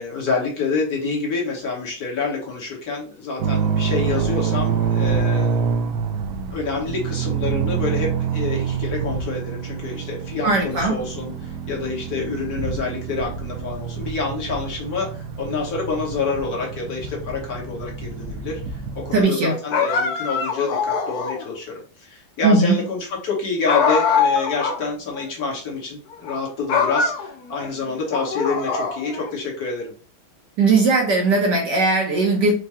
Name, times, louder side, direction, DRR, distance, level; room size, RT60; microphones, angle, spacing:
voice 1, 0.0-5.7 6.5-29.9, left 4 dB, 50° left, -2 dB, 1.6 m, -27 dB
sound 1, 3.4-19.2, right 6 dB, 85° right, 0.9 m, -26 dB
voice 2, 10.4-11.0 19.1-19.5 22.4-22.8 30.6-32.5, right 3 dB, 60° right, -1 dB, 1.3 m, -18 dB
sound 2, 19.7-21.5 23.7-24.8 25.2-25.3 26.1-26.4 26.7-27.7 28.1-29.3, left 5 dB, 70° left, 0.9 m, -22 dB
4.8 x 2.2 x 4.2 m, 0.39 s
omnidirectional pair, 2.4 m